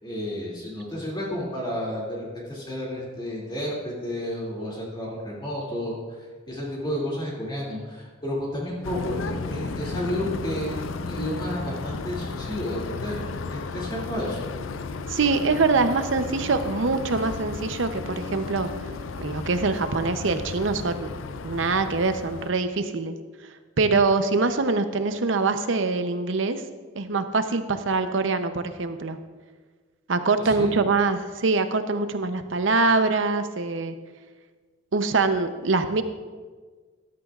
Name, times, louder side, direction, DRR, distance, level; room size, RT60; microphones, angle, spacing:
voice 1, 0.0-6.0 6.5-10.8 11.0-13.2 13.5-14.5 30.5-30.7, left 1 dB, 25° left, -4 dB, 2.6 m, -31 dB
sound 1, 8.8-22.5, left 4 dB, 85° left, 0.5 m, -34 dB
voice 2, 15.1-18.7 19.2-21.1 21.4-23.1 23.8-26.6 26.9-29.2 30.1-33.9 34.9-36.0, right 3 dB, 75° right, 9 dB, 0.7 m, -24 dB
13.5 x 12.5 x 2.4 m, 1.5 s
head